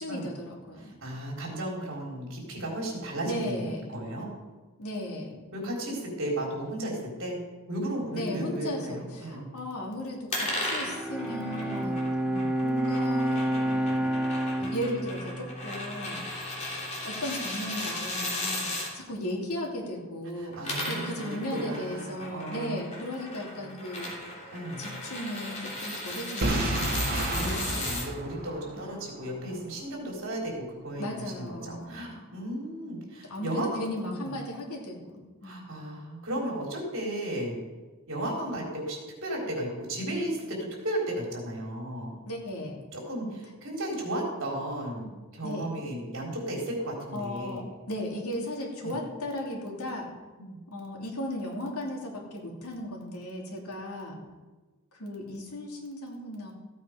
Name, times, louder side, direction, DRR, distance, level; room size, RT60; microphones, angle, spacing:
voice 1, 0.0-0.9 3.2-4.0 4.8-5.3 8.1-12.1 12.6-14.3 14.7-16.3 17.0-18.7 18.9-24.5 24.8-27.1 28.8-28.9 31.0-32.0 33.3-35.7 42.3-42.8 45.4-45.7 47.1-50.1 50.7-54.2 54.9-56.5, equal, 80° left, -1 dB, 2.9 m, -36 dB
voice 2, 0.8-4.3 5.5-7.4 7.7-9.5 12.2-12.5 20.4-22.8 23.6-23.7 24.5-24.8 27.3-33.7 34.0-34.4 35.4-37.6 38.1-42.2 42.9-47.7 48.8-49.0 50.4-50.6, right 1 dB, 60° right, -1 dB, 3.8 m, -34 dB
sound 1, 10.3-18.9 20.4-28.1, left 1 dB, 30° left, 3.3 m, -36 dB
Bowed string instrument, 10.9-16.4, right 1 dB, 5° right, 0.7 m, -29 dB
Boom, 26.4-29.3, right 1 dB, 45° right, 1.9 m, -30 dB
15.0 x 8.6 x 5.1 m, 1.3 s
head